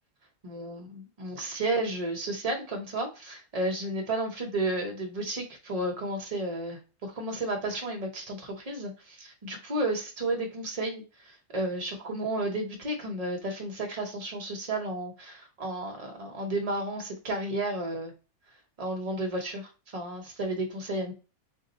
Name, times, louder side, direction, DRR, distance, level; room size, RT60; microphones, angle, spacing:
voice 1, 0.4-18.1 18.8-21.1, right 2 dB, 35° right, 2 dB, 0.6 m, -32 dB
2.6 x 2.3 x 3.9 m, 0.32 s
omnidirectional pair, 1.5 m